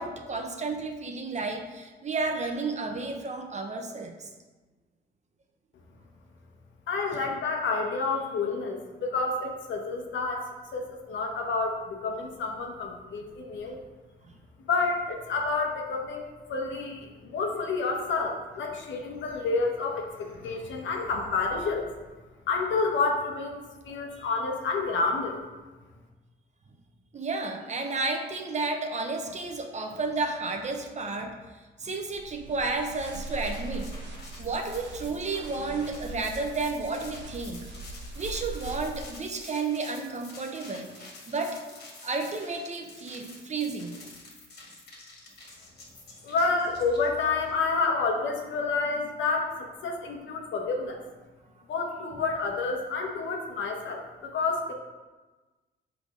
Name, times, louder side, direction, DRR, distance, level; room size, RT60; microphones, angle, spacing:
voice 1, 0.0-4.3 7.1-7.2 27.1-31.4 31.8-33.9 34.4-37.6 38.2-41.6 42.0-44.0, right 3 dB, 35° right, 4 dB, 0.8 m, -32 dB
voice 2, 6.9-10.4 10.7-13.8 14.7-21.9 22.5-25.4 46.2-51.0 51.7-54.7, left 4 dB, 70° left, 2 dB, 1.0 m, -29 dB
sound 1, 32.1-39.1, right 2 dB, 65° right, 0.9 m, -41 dB
sound 2, 33.0-47.5, left 2 dB, 55° left, 1.8 m, -49 dB
6.0 x 3.5 x 5.0 m, 1.2 s
cardioid pair, 90°, 20 cm